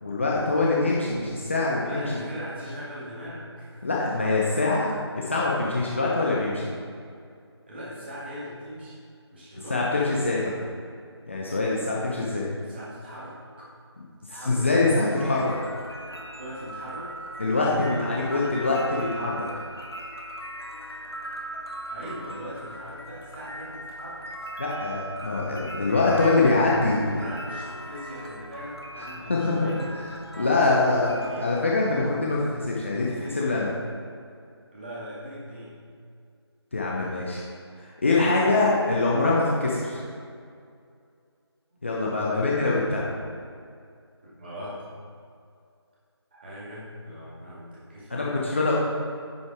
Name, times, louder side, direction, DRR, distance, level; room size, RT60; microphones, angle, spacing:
voice 1, 0.0-2.1 3.8-4.9 5.2-6.7 9.7-10.5 11.3-12.5 14.4-15.5 17.4-19.5 24.6-27.2 29.0-29.7 30.4-31.1 31.4-33.7 36.7-37.4 37.8-40.0 41.8-43.1 48.1-48.7, left 3 dB, 25° left, -5 dB, 0.8 m, -24 dB
voice 2, 1.8-4.2 7.7-8.9 9.3-9.8 12.5-13.7 14.3-14.7 15.1-15.6 16.0-17.3 21.9-24.3 26.9-30.0 30.3-31.5 33.1-33.7 34.7-35.8 36.8-37.2 44.4-44.9 46.3-48.4, equal, 25° right, -9 dB, 2.1 m, -40 dB
sound 1, 15.0-31.3, right 1 dB, 60° left, 1.2 m, -39 dB
9.9 x 5.5 x 4.6 m, 2.3 s
figure-of-eight pair, 165°, 14 cm